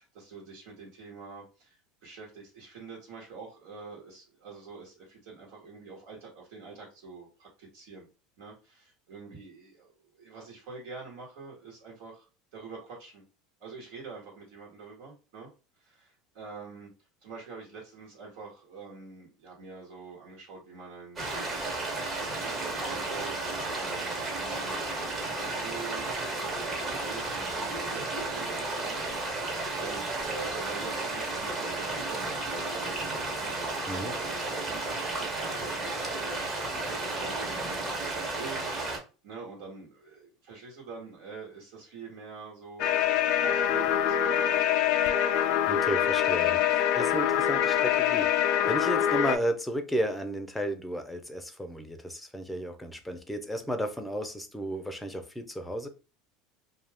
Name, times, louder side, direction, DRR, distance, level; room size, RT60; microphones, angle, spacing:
voice 1, 0.0-8.1 8.4-13.2 13.6-15.5 15.8-16.9 17.2-21.5 21.8-45.1 46.4-46.7 48.6-48.8, right 4 dB, 75° right, -2 dB, 1.3 m, -46 dB
sound 1, 21.2-39.0, right 2 dB, 30° right, 1.1 m, -33 dB
sound 2, 42.8-49.4, left 10 dB, 65° left, 0.4 m, -25 dB
voice 2, 45.7-55.9, right 1 dB, 5° left, 6 dB, 0.6 m, -33 dB
2.4 x 2.4 x 3.4 m, 0.33 s
supercardioid pair, 100°, 0 cm